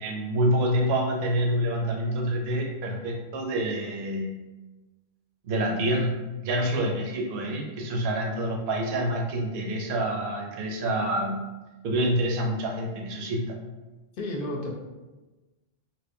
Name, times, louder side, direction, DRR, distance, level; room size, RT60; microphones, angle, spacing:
voice 1, 0.0-4.3 5.4-11.4 11.8-13.5, right 1 dB, 70° right, 1 dB, 0.8 m, -27 dB
voice 2, 14.2-14.7, left 1 dB, 60° left, -1 dB, 0.8 m, -31 dB
3.4 x 2.9 x 2.5 m, 1.2 s
omnidirectional pair, 1.1 m